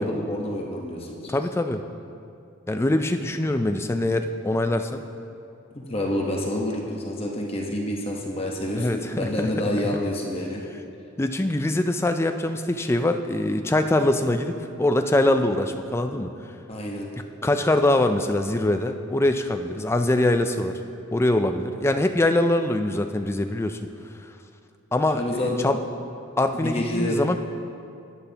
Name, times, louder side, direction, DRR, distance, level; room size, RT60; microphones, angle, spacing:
voice 1, 0.0-1.3 5.7-10.6 16.7-17.2 25.1-25.6 26.5-27.2, left 1 dB, 30° left, -1 dB, 1.0 m, -28 dB
voice 2, 1.3-1.8 2.7-5.0 8.7-9.5 11.2-16.3 17.4-20.8 21.1-23.8 24.9-25.8 26.4-27.4, left 1 dB, 10° left, 7 dB, 0.3 m, -23 dB
12.5 x 9.9 x 2.9 m, 2.5 s
head